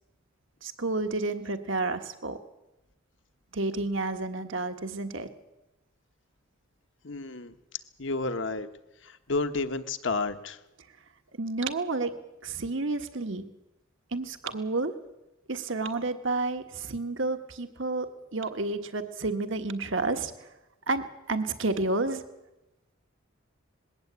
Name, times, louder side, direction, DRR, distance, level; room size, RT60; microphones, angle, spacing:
voice 1, 0.6-2.4 3.5-5.3 11.4-12.1 12.4-13.5 14.1-14.9 15.5-20.5 20.9-22.2, right 3 dB, 65° right, 8 dB, 1.5 m, -30 dB
voice 2, 7.0-7.5 8.0-8.7 9.0-10.6, left 3 dB, 60° left, 10 dB, 1.2 m, -31 dB
21.0 x 17.0 x 8.2 m, 0.97 s
head